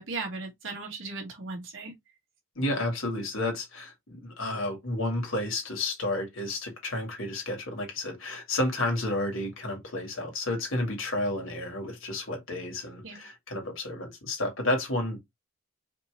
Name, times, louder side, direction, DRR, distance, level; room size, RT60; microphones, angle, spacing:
voice 1, 0.0-1.9 13.0-13.2, right 3 dB, 65° right, 2.2 m, -37 dB
voice 2, 2.6-15.2, left 1 dB, 70° left, 2.1 m, -31 dB
5.1 x 2.9 x 3.3 m
head